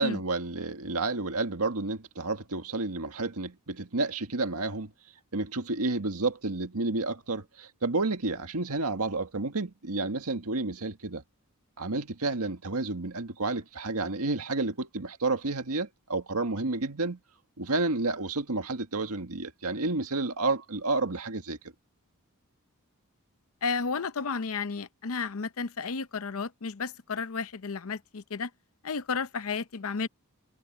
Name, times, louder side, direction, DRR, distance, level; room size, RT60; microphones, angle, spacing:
voice 1, 0.0-4.9 5.3-11.2 11.8-17.2 17.6-21.6, right 3 dB, 80° right, 1.7 m, -30 dB
voice 2, 23.6-28.5 28.8-30.1, left 5 dB, 70° left, 0.7 m, -32 dB
head